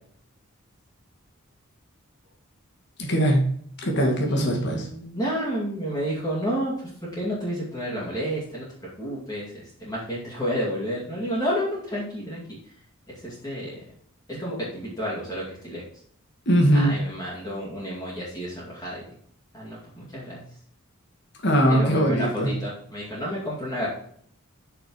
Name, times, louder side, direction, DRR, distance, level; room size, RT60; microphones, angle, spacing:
voice 1, 3.0-3.4 3.8-4.9 16.5-16.9 21.4-22.5, equal, 50° left, 0 dB, 2.1 m, -21 dB
voice 2, 4.2-8.7 9.0-12.4 13.1-13.8 14.3-15.8 16.7-19.0 19.5-20.4 21.8-23.9, equal, 15° left, -7 dB, 2.2 m, -30 dB
6.1 x 6.0 x 4.7 m, 0.62 s
head